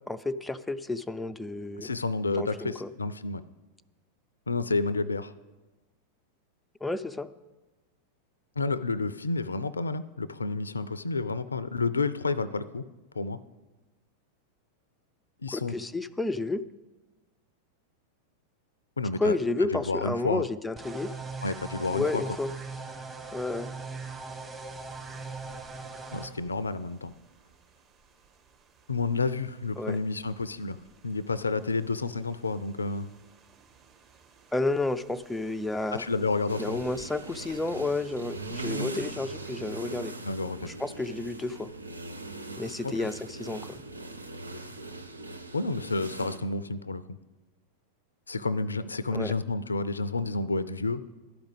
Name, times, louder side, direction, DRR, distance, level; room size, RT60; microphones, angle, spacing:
voice 1, 0.1-1.9 2.4-2.9 6.8-7.3 15.5-16.6 19.2-21.1 21.9-22.5 23.3-23.7 29.8-30.0 34.5-36.0 36.6-40.1 40.6-41.7 42.6-43.8 49.1-49.3, left 2 dB, 5° left, 10 dB, 0.4 m, -31 dB
voice 2, 1.8-3.4 4.5-5.3 8.6-12.8 13.1-13.4 15.4-15.7 19.0-19.4 19.7-20.5 21.4-22.2 26.1-27.1 28.9-30.8 31.0-33.1 35.9-36.8 40.2-40.7 42.8-43.1 45.5-47.0 48.3-51.0, left 3 dB, 75° left, 17 dB, 0.4 m, -30 dB
sound 1, 20.8-26.3, right 4 dB, 15° right, 1.3 m, -40 dB
sound 2, 24.7-39.9, right 5 dB, 30° right, 1.5 m, -59 dB
sound 3, 36.5-46.4, right 2 dB, 80° right, 0.7 m, -40 dB
12.0 x 5.1 x 7.9 m, 1.2 s
figure-of-eight pair, 90°, 0 cm